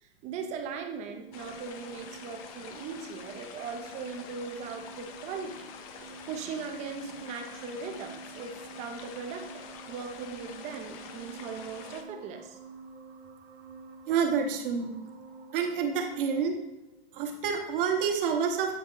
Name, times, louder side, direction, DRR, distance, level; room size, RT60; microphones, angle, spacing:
voice 1, 0.0-12.6, right 5 dB, 20° right, 5 dB, 0.5 m, -39 dB
sound 1, 0.7-16.5, right 5 dB, 90° right, 0.8 m, -49 dB
sound 2, 1.3-12.0, left 7 dB, 35° left, 0.5 m, -47 dB
voice 2, 14.1-14.9 15.5-16.6 17.1-18.7, right 6 dB, 60° right, 3 dB, 1.2 m, -28 dB
8.0 x 3.5 x 3.9 m, 0.93 s
supercardioid pair, 150°, 31 cm